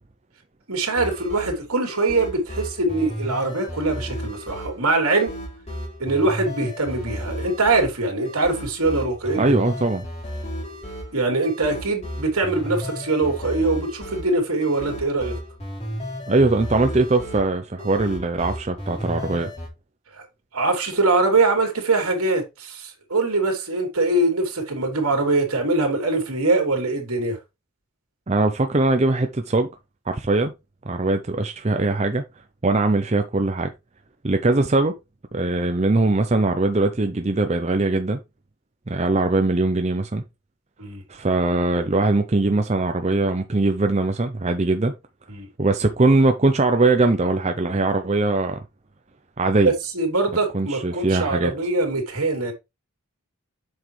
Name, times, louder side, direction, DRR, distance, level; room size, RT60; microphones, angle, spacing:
voice 1, 0.7-5.3 6.0-9.5 11.1-15.4 20.2-20.3 20.5-27.4 40.8-41.0 45.3-45.5 49.9-52.5, right 2 dB, 75° right, 3.2 m, -23 dB
sound 1, 1.0-19.7, equal, 30° left, 3.6 m, -34 dB
voice 2, 9.4-10.0 16.3-19.5 28.3-29.7 30.1-30.5 30.9-32.2 32.6-33.7 34.2-34.9 35.3-38.2 38.9-40.2 41.1-44.9 45.6-48.6 49.4-49.7 50.5-51.5, right 2 dB, 30° right, 0.6 m, -21 dB
7.7 x 6.1 x 3.3 m
head